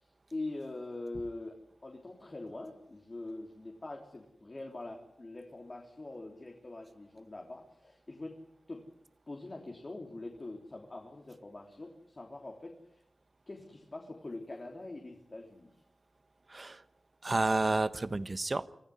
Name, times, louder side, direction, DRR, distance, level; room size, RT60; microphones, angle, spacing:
voice 1, 0.0-1.6 1.8-8.3 8.7-8.8 9.3-13.0 13.5-15.7, left 2 dB, 35° left, 1 dB, 3.3 m, -43 dB
voice 2, 16.5-16.8 17.2-18.7, right 2 dB, 40° right, 13 dB, 1.1 m, -30 dB
25.5 x 15.0 x 9.8 m, 0.80 s
wide cardioid pair, 90°, 0 cm